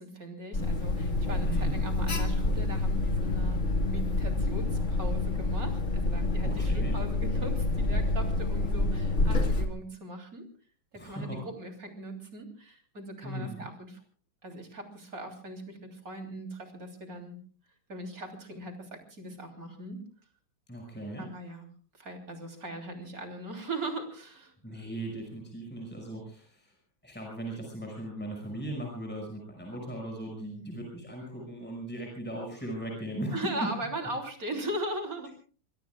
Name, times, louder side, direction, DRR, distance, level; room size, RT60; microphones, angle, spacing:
voice 1, 0.0-10.5 10.9-14.0 14.4-17.4 17.9-20.0 21.2-21.7 21.9-24.8 30.5-30.7 33.3-35.3, right 1 dB, 45° right, 4 dB, 3.7 m, -39 dB
Alarm, 0.5-9.6, left 2 dB, 40° left, 2.0 m, -28 dB
voice 2, 1.4-1.8 6.4-7.0 10.9-11.4 13.2-13.6 20.7-21.2 24.6-26.7 27.0-33.4, right 1 dB, 5° left, 0 dB, 5.8 m, -38 dB
26.0 x 23.0 x 2.4 m, 0.39 s
omnidirectional pair, 2.1 m